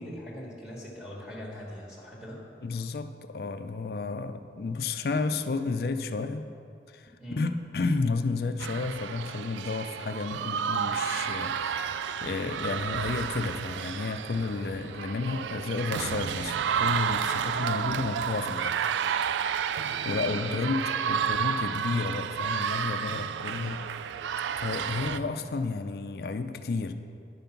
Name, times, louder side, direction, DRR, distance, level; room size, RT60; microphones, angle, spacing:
voice 1, 0.0-2.4 7.2-7.4 20.4-20.6 21.2-21.5 23.6-23.8, equal, 5° right, -6 dB, 1.5 m, -41 dB
voice 2, 2.6-6.5 6.9-18.9 20.0-23.8 24.6-26.9, left 3 dB, 60° left, 9 dB, 0.4 m, -32 dB
sound 1, 8.6-25.2, right 7 dB, 85° right, 0.3 m, -31 dB
10.0 x 5.3 x 5.8 m, 2.4 s
head